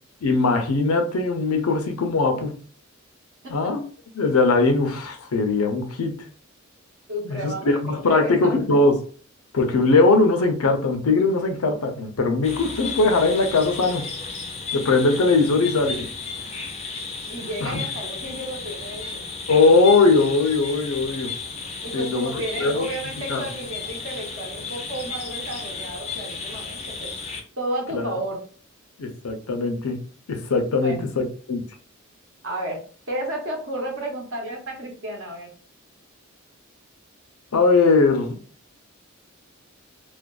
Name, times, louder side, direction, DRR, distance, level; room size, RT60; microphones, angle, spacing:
voice 1, 0.2-2.6 3.5-3.8 4.1-6.3 7.2-9.0 9.5-14.1 14.7-16.1 17.6-17.8 19.5-21.3 21.9-22.3 22.6-22.9 23.3-23.4 27.9-28.1 29.0-30.0 30.3-31.6 37.5-38.4, left 3 dB, 90° left, 0.5 m, -20 dB
voice 2, 7.1-8.6 17.3-19.3 21.8-27.1 27.6-28.4 30.8-31.1 32.4-32.8 33.1-35.5, right 1 dB, 65° right, 0.9 m, -32 dB
sound 1, 12.4-27.4, left 4 dB, 30° left, 0.4 m, -34 dB
2.4 x 2.2 x 2.3 m
head